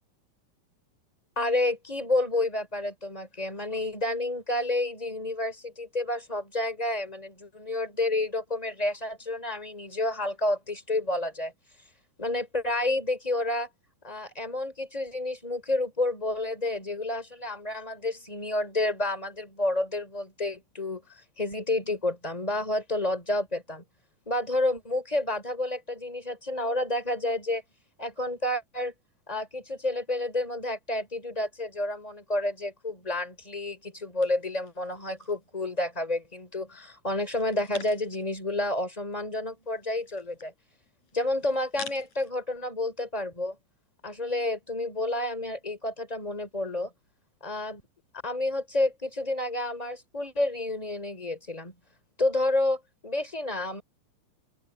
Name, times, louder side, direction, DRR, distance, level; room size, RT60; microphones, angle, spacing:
voice 1, 1.3-11.5 12.2-13.7 14.0-21.0 21.4-23.8 24.2-27.6 28.0-28.9 29.3-40.5 41.1-43.6 44.0-46.9 47.4-47.8 48.2-51.7 52.2-53.8, left 2 dB, 10° left, 3.4 m, -30 dB
sound 1, 34.2-35.5 35.9-36.6 37.1-38.4 38.7-38.8 39.0-42.3, left 5 dB, 50° left, 5.6 m, -47 dB
open air
omnidirectional pair, 4.5 m